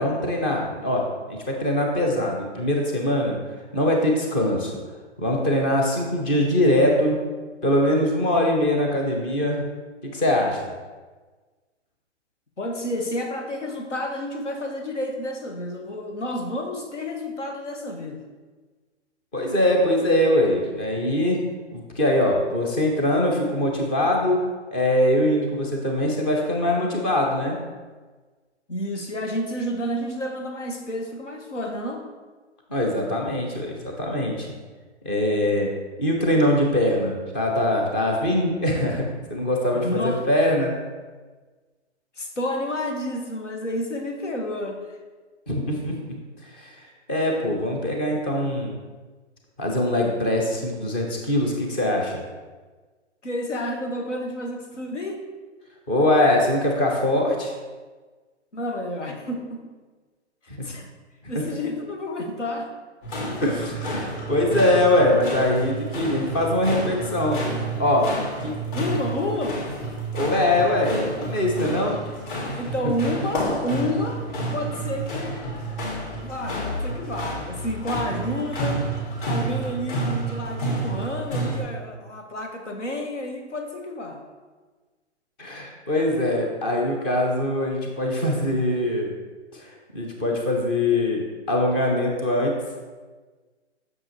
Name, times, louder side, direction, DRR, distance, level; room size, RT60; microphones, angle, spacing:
voice 1, 0.0-3.4 3.7-4.7 5.2-7.2 7.6-9.6 10.1-10.7 19.3-21.4 21.7-24.4 24.7-27.6 32.7-34.5 35.0-35.7 36.0-40.7 45.5-46.0 46.6-46.7 47.1-48.7 49.6-52.1 55.9-57.5 60.6-60.7 63.4-67.4 67.8-68.1 68.4-68.5 70.1-72.0 72.5-72.6 85.4-89.1 89.5-92.5, left 1 dB, 10° left, 0 dB, 0.3 m, -22 dB
voice 2, 12.6-18.2 28.7-32.0 39.7-40.2 42.2-45.0 53.2-55.2 58.5-59.6 60.4-60.9 61.3-62.7 68.7-69.6 72.6-74.3 74.5-75.5 76.2-78.9 79.3-84.2, left 1 dB, 90° left, 3 dB, 1.4 m, -30 dB
sound 1, 63.0-81.6, right 1 dB, 45° left, 2.0 m, -30 dB
7.7 x 6.3 x 3.0 m, 1.4 s
hypercardioid pair, 135°, 35 cm